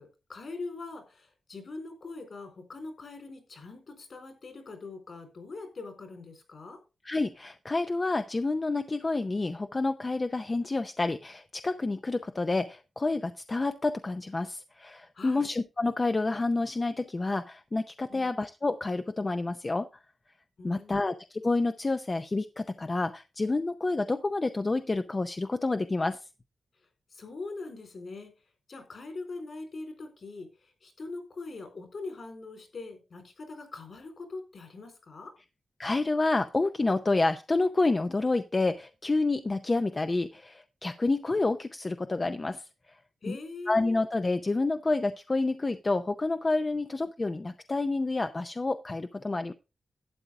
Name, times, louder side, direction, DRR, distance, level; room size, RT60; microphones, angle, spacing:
voice 1, 0.0-6.8 15.1-15.5 18.1-18.3 20.6-21.0 27.1-28.3 28.7-35.3 43.2-44.0 46.7-46.8, left 3 dB, 55° left, 6 dB, 4.1 m, -42 dB
voice 2, 7.0-19.9 20.6-26.3 35.8-43.0 43.3-43.4 43.7-49.5, left 3 dB, 25° left, 9 dB, 0.6 m, -29 dB
12.0 x 8.7 x 3.6 m, 0.29 s
wide cardioid pair, 125°, 0 cm